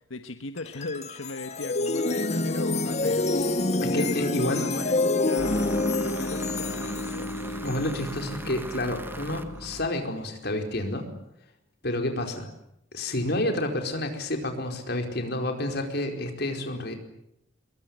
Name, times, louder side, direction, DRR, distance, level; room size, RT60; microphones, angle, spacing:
voice 1, 0.0-7.6, left 3 dB, 90° left, 7 dB, 1.4 m, -38 dB
sound 1, 0.6-9.8, left 2 dB, 35° left, 1.2 m, -28 dB
voice 2, 3.8-4.8 7.6-11.1 11.8-12.5 12.9-16.9, left 1 dB, 55° left, 4 dB, 4.7 m, -29 dB
sound 2, 5.4-10.3, right 1 dB, 10° right, 1.4 m, -40 dB
23.0 x 22.5 x 9.5 m, 0.77 s
head